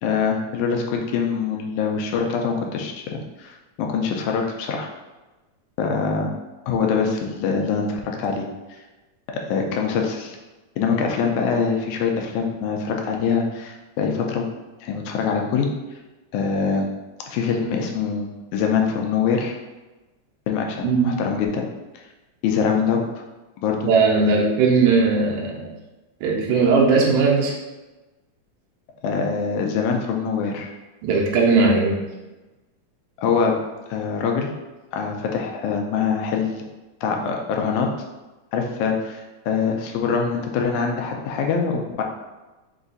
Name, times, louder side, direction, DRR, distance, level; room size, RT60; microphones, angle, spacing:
voice 1, 0.0-3.0 3.4-4.9 5.8-6.3 6.7-8.5 9.5-10.4 10.8-14.5 14.8-15.7 16.3-16.9 17.3-19.6 20.5-21.6 22.4-23.2 23.6-23.9 29.0-30.7 33.2-33.6 33.9-34.5 34.9-36.5 37.0-37.9 38.5-42.0, left 5 dB, 90° left, 2 dB, 2.0 m, -24 dB
voice 2, 23.9-25.7 26.2-27.5 31.0-32.0, right 4 dB, 80° right, -1 dB, 2.2 m, -18 dB
5.3 x 2.4 x 3.9 m, 1.1 s
omnidirectional pair, 3.4 m